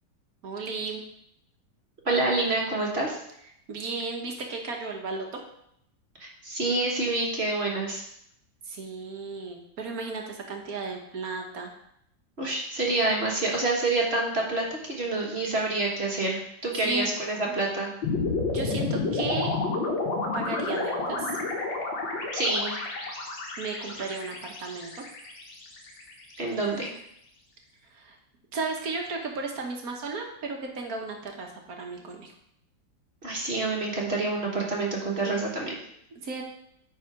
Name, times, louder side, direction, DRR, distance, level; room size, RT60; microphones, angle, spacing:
voice 1, 0.4-1.0 3.7-5.3 8.7-11.7 16.8-17.5 18.5-19.5 20.3-21.3 23.6-25.0 27.9-28.2 28.5-32.3 36.2-36.4, right 3 dB, 55° right, 2 dB, 1.6 m, -34 dB
voice 2, 2.0-3.2 6.2-8.0 12.4-17.9 22.3-22.8 26.4-26.9 33.2-35.8, right 2 dB, 35° right, -2 dB, 1.6 m, -27 dB
sound 1, 18.0-26.3, left 3 dB, 85° left, 2.1 m, -30 dB
9.8 x 4.2 x 4.8 m, 0.74 s
omnidirectional pair, 2.0 m